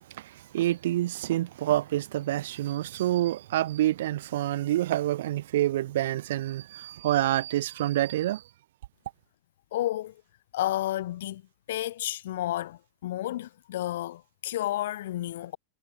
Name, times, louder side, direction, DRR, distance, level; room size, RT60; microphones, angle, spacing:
voice 1, 0.2-8.4, right 14 dB, 55° right, 3.0 m, -27 dB
voice 2, 9.7-10.1 10.5-11.4 11.7-15.6, left 14 dB, 55° left, 2.8 m, -31 dB
figure-of-eight pair, 90°, 0 cm